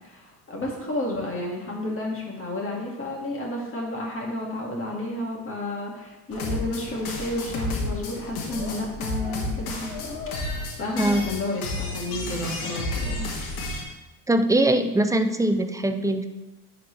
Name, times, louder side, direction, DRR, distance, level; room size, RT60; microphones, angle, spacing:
voice 1, 0.0-10.5 10.8-13.3, left 1 dB, 30° left, -2 dB, 2.2 m, -31 dB
sound 1, 6.3-13.8, left 2 dB, 85° left, 1.5 m, -31 dB
voice 2, 14.3-16.3, right 1 dB, 10° right, 8 dB, 0.5 m, -22 dB
10.5 x 4.0 x 3.3 m, 1.1 s
supercardioid pair, 80°, 44 cm